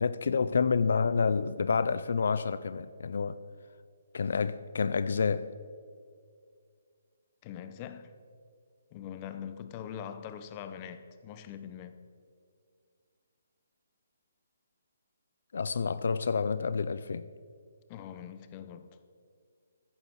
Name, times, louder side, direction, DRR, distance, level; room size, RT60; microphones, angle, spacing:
voice 1, 0.0-3.4 4.1-5.5 15.5-17.3, left 5 dB, 65° left, 0.5 m, -28 dB
voice 2, 7.4-8.1 8.9-12.0 17.9-18.9, left 9 dB, 25° left, 0.7 m, -42 dB
14.5 x 9.9 x 6.0 m
hypercardioid pair, 165°, 0 cm